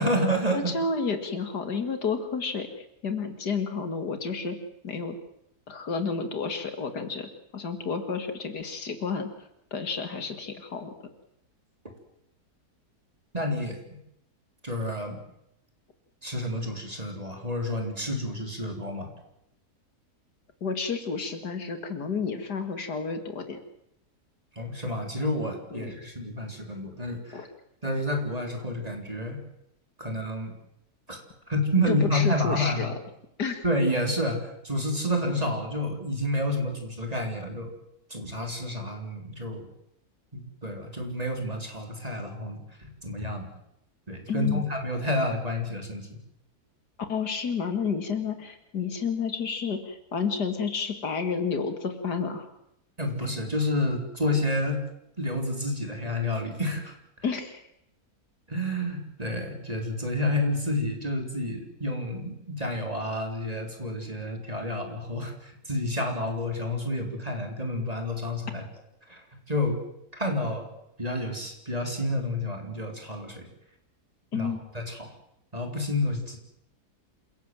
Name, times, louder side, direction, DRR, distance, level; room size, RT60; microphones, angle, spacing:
voice 1, 0.0-0.7 13.3-13.8 14.6-15.2 16.2-19.1 24.6-27.5 27.8-29.4 30.0-30.5 31.1-31.2 31.5-33.0 33.6-37.7 38.1-39.7 40.3-43.5 44.1-46.1 53.0-54.8 55.2-56.9 58.5-68.6 69.1-69.2 69.5-69.8 70.1-70.7 71.0-73.5 74.3-74.5 74.7-75.1 75.5-76.4, left 1 dB, 25° right, 3 dB, 3.7 m, -29 dB
voice 2, 0.5-4.6 4.8-5.2 5.7-9.3 9.7-10.9 20.6-23.6 25.7-25.9 27.3-27.5 31.9-32.9 33.4-33.6 44.3-44.6 47.1-52.5 57.2-57.6 74.3-74.6, left 5 dB, 85° left, 8 dB, 2.8 m, -31 dB
27.5 x 17.0 x 7.6 m, 0.81 s
omnidirectional pair, 1.7 m